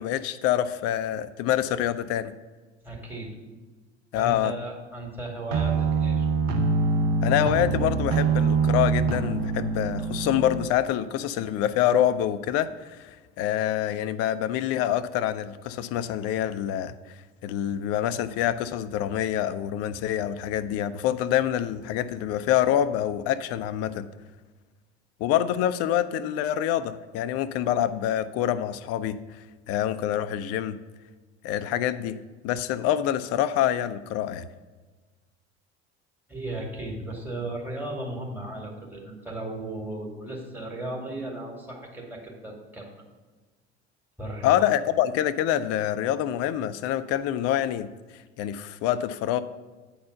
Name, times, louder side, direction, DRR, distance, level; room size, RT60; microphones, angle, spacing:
voice 1, 0.0-2.3 4.1-4.5 7.2-12.7 13.0-16.9 17.4-24.1 25.2-29.2 29.7-30.8 31.4-32.2 32.4-34.5 44.4-47.9 48.4-49.4, left 11 dB, 45° left, 14 dB, 0.5 m, -26 dB
voice 2, 2.8-3.4 4.1-6.3 36.3-42.9 44.2-44.6, right 1 dB, 5° right, -1 dB, 2.5 m, -36 dB
sound 1, 5.5-10.7, right 4 dB, 55° right, 0.9 m, -24 dB
9.2 x 4.3 x 6.9 m, 1.3 s
figure-of-eight pair, 65°, 33 cm